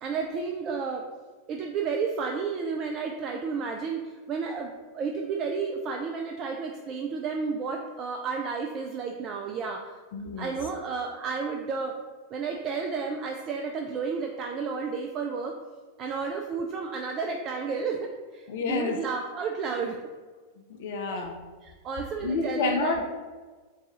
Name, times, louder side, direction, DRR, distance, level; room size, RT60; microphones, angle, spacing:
voice 1, 0.0-1.0 1.5-9.9 10.4-11.9 12.3-15.6 16.0-20.0 21.1-21.2 21.6-22.9, right 5 dB, 35° right, 2 dB, 0.3 m, -32 dB
voice 2, 10.1-10.5 18.5-19.0 20.8-21.4 22.2-23.2, left 3 dB, 55° left, 3 dB, 0.4 m, -29 dB
4.0 x 2.4 x 3.8 m, 1.4 s
figure-of-eight pair, 90°, 0 cm